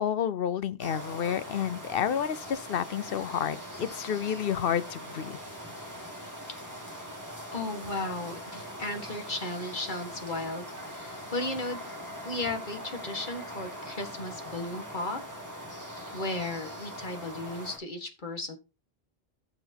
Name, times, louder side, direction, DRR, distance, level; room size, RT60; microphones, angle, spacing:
voice 1, 0.0-5.4, left 8 dB, 65° left, 0.9 m, -30 dB
sound 1, 0.8-17.8, equal, 15° right, 2.9 m, -42 dB
voice 2, 7.5-10.7 10.9-11.8 12.2-15.2 16.1-18.6, left 2 dB, 50° left, 1.9 m, -35 dB
14.0 x 6.0 x 2.9 m
omnidirectional pair, 1.1 m